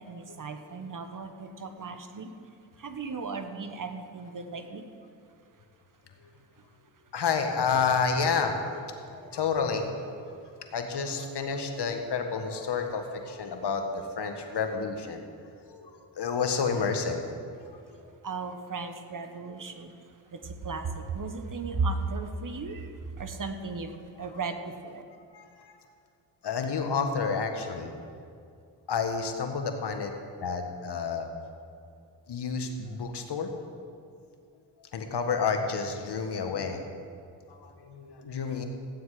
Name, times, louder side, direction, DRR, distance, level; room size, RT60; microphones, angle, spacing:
voice 1, 0.0-2.3 2.8-4.9 18.2-19.9 20.3-25.0, right 4 dB, 45° right, 7 dB, 1.2 m, -35 dB
voice 2, 7.1-10.0 10.4-15.2 15.7-17.3 17.6-18.0 25.3-25.7 26.4-27.9 28.9-30.1 30.4-31.3 32.3-33.5 34.9-36.8 37.5-38.6, left 5 dB, 65° left, 5 dB, 1.5 m, -30 dB
15.0 x 9.4 x 4.9 m, 2.3 s
supercardioid pair, 50°, 44 cm